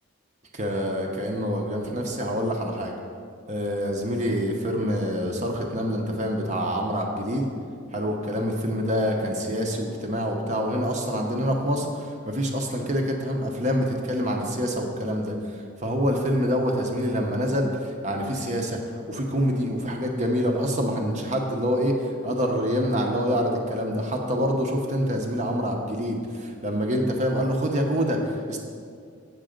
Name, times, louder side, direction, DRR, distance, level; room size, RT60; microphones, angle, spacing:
voice 1, 0.5-2.9 3.5-7.5 7.9-11.9 12.3-15.3 15.8-17.7 18.0-18.8 19.1-21.9 22.2-28.2 28.5-28.6, equal, 35° right, 1 dB, 0.8 m, -26 dB
7.7 x 6.7 x 5.1 m, 2.3 s
head